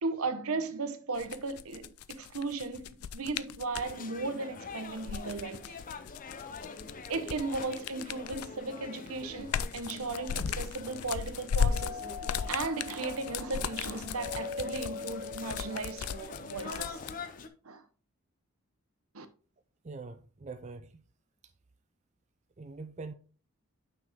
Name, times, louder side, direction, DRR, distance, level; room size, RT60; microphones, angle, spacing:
voice 1, 0.0-5.8 7.1-12.0 12.5-17.3 17.6-17.8 19.1-19.3, right 3 dB, 80° right, 0.9 m, -36 dB
sound 1, 1.1-3.9 4.9-8.6 9.1-17.1, left 7 dB, 85° left, 0.4 m, -36 dB
sound 2, 3.7-17.5, left 4 dB, 40° left, 0.6 m, -45 dB
Doorbell, 11.6-16.5, left 4 dB, 65° left, 0.9 m, -43 dB
voice 2, 19.8-21.0 22.6-23.1, right 3 dB, 30° right, 0.4 m, -43 dB
6.1 x 6.0 x 3.5 m
head